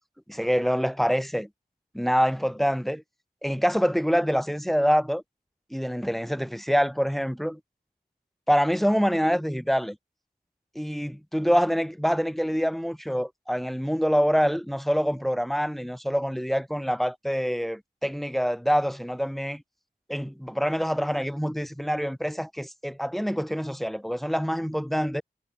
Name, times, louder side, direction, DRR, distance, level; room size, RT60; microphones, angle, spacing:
voice 1, 0.3-1.5 1.9-3.0 3.4-5.2 5.7-7.6 8.5-10.0 10.8-19.6 20.1-25.2, equal, ahead, 3.7 m, -25 dB
wide cardioid pair, 60°, 17 cm